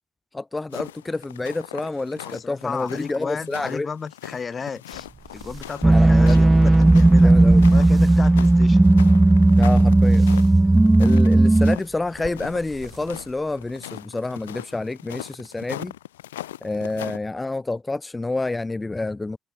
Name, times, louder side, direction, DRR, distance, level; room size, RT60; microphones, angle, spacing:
voice 1, 0.3-3.9 5.9-6.4 7.2-7.7 9.6-10.3 11.0-15.9 16.6-19.4, left 2 dB, 25° left, 0.9 m, -28 dB
sound 1, 0.7-17.2, left 13 dB, 90° left, 0.4 m, -40 dB
voice 2, 2.2-5.1 5.3-7.3 7.7-8.8, left 5 dB, 45° left, 1.4 m, -33 dB
sound 2, 4.9-13.8, right 5 dB, 40° right, 7.4 m, -43 dB
sound 3, 5.8-11.8, right 2 dB, 20° right, 0.3 m, -14 dB
hypercardioid pair, 45°, 0 cm